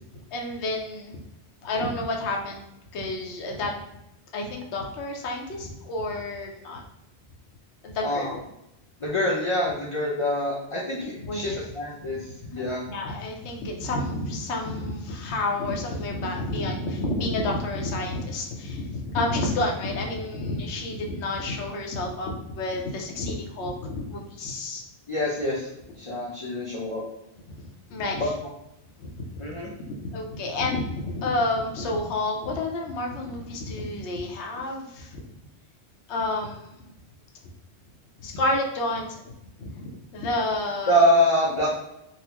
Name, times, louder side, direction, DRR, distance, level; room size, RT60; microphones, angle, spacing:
voice 1, 0.3-1.2 1.6-2.6 2.9-3.7 4.3-6.8 7.8-8.5 11.1-11.6 12.0-24.8 27.5-27.6 27.9-28.3 29.0-35.2 36.1-36.7 38.2-39.3 39.6-41.0, left 2 dB, 75° left, 1 dB, 0.9 m, -30 dB
voice 2, 8.0-8.3 9.0-12.8 25.1-25.7 26.0-27.0 28.2-28.3 29.4-29.7 40.9-41.7, equal, 40° left, -4 dB, 0.4 m, -25 dB
3.9 x 2.0 x 2.8 m, 0.87 s
omnidirectional pair, 1.2 m